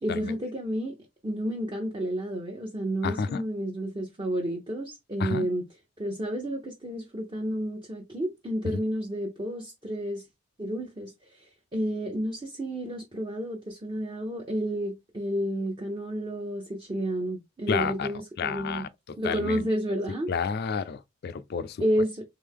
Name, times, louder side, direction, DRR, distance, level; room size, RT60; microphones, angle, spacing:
voice 1, 0.0-0.9 1.2-5.7 6.0-10.2 10.6-18.9 19.2-20.3 21.8-22.2, equal, 25° right, 0.8 m, -31 dB
voice 2, 3.0-3.4 5.2-5.5 8.6-8.8 17.7-18.1 18.4-18.9 19.2-19.7 20.3-21.8, left 5 dB, 55° left, 0.4 m, -30 dB
3.6 x 3.4 x 3.6 m
head